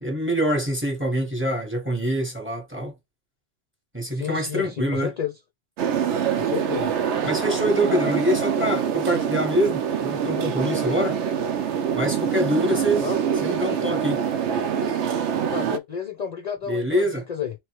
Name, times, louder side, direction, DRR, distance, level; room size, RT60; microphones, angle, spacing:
voice 1, 0.0-2.9 3.9-5.1 7.2-11.2 11.9-13.0 13.4-14.2 16.7-17.2, equal, 10° right, 1.0 m, -25 dB
voice 2, 4.1-5.3 6.4-6.9 13.0-13.4 15.5-17.5, left 8 dB, 50° left, 0.5 m, -31 dB
sound 1, 5.8-15.8, right 8 dB, 70° right, 0.8 m, -25 dB
3.1 x 3.0 x 2.9 m
omnidirectional pair, 1.3 m